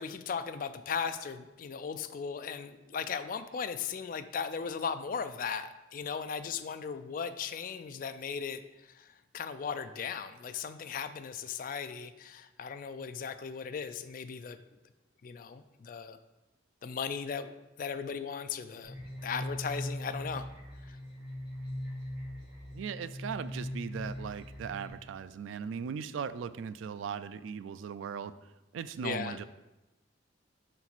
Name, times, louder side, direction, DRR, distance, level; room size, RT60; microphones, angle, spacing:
voice 1, 0.0-8.6 9.3-14.6 15.2-16.2 16.8-17.5 17.8-18.9 19.2-20.5 20.9-21.0 29.0-29.4, left 6 dB, 45° left, 10 dB, 0.3 m, -37 dB
sound 1, 18.8-24.9, left 1 dB, 60° right, 2.0 m, -40 dB
voice 2, 22.7-28.3 28.7-29.4, right 6 dB, 80° right, 14 dB, 0.3 m, -38 dB
5.9 x 4.4 x 4.0 m, 1.0 s
head